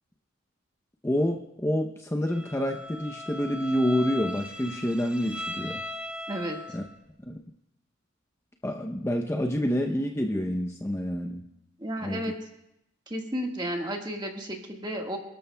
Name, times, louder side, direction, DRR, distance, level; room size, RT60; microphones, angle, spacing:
voice 1, 1.0-5.8 6.7-6.8 7.3-7.4 8.6-11.4 12.0-12.3, equal, 15° left, 3 dB, 0.6 m, -28 dB
Bowed string instrument, 2.3-7.0, left 1 dB, 5° right, 1.1 m, -38 dB
voice 2, 11.8-12.3 13.1-15.2, equal, 20° right, 1 dB, 1.6 m, -32 dB
27.0 x 12.5 x 2.2 m, 0.84 s
head